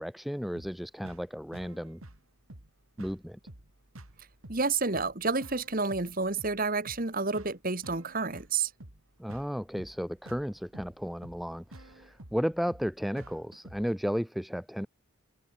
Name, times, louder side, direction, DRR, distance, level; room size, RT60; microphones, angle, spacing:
voice 1, 0.0-2.0 3.0-3.4 9.2-14.9, equal, ahead, 0.4 m, -34 dB
sound 1, 0.6-14.0, right 1 dB, 75° right, 3.1 m, -51 dB
voice 2, 4.5-8.7, right 4 dB, 40° right, 1.7 m, -30 dB
head